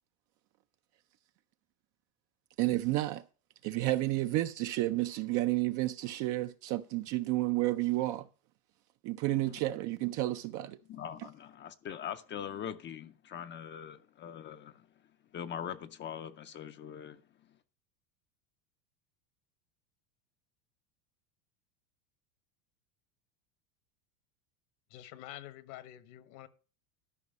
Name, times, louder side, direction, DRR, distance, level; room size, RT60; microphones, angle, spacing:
voice 1, 2.6-3.2 3.6-8.3 9.0-10.8, right 17 dB, 45° right, 0.5 m, -31 dB
voice 2, 10.9-14.9 15.3-17.2, left 9 dB, 25° left, 0.5 m, -42 dB
voice 3, 24.9-26.5, left 13 dB, 60° left, 1.1 m, -48 dB
13.0 x 5.2 x 5.2 m
supercardioid pair, 125°, 45 cm